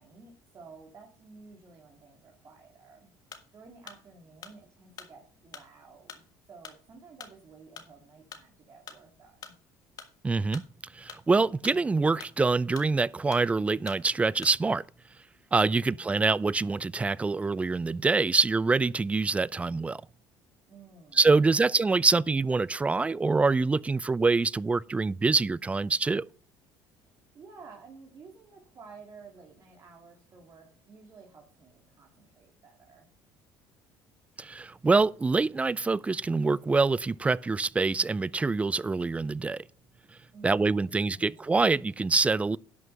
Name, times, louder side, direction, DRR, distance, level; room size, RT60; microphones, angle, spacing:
voice 1, 0.0-3.1 3.5-9.5 15.7-16.1 20.7-21.7 27.0-33.1 40.3-41.6, right 4 dB, 40° right, 2.3 m, -53 dB
sound 1, 3.3-14.8, left 7 dB, 50° left, 1.6 m, -48 dB
voice 2, 10.2-10.6 10.9-14.8 15.5-20.0 21.1-26.3 34.4-39.6 40.4-42.6, right 3 dB, 15° right, 0.3 m, -25 dB
11.0 x 5.9 x 5.4 m
supercardioid pair, 100°, 8 cm